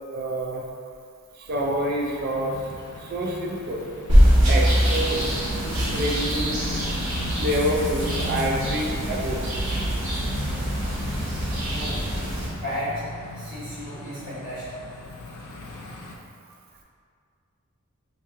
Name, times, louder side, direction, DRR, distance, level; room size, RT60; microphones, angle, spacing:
voice 1, 0.1-0.6 1.4-2.6 3.0-3.9 4.5-5.2 5.5-6.8 7.4-9.8, right 1 dB, 45° right, -1 dB, 0.3 m, -28 dB
sound 1, 1.5-16.1, left 2 dB, 85° left, 0.4 m, -38 dB
sound 2, 4.1-12.5, equal, 60° right, 1.1 m, -23 dB
voice 2, 11.7-12.0 12.6-13.0 13.3-14.8, equal, 20° right, -16 dB, 1.2 m, -33 dB
3.0 x 2.7 x 3.4 m, 2.2 s
head